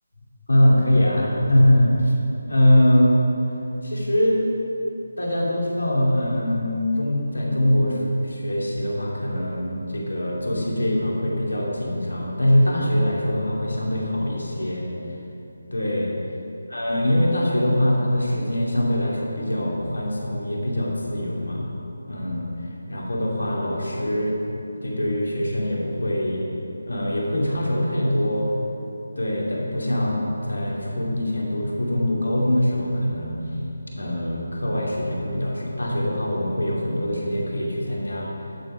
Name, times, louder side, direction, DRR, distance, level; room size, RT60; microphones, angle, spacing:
voice 1, 0.5-2.1 2.5-3.3 3.8-4.4 5.2-14.9 15.7-16.1 16.7-21.7 22.1-24.4 24.8-26.4 26.9-28.5 29.2-33.6 33.9-38.3, left 1 dB, 75° left, -3 dB, 2.5 m, -23 dB
12.0 x 7.3 x 5.0 m, 2.9 s
figure-of-eight pair, 155°, 0 cm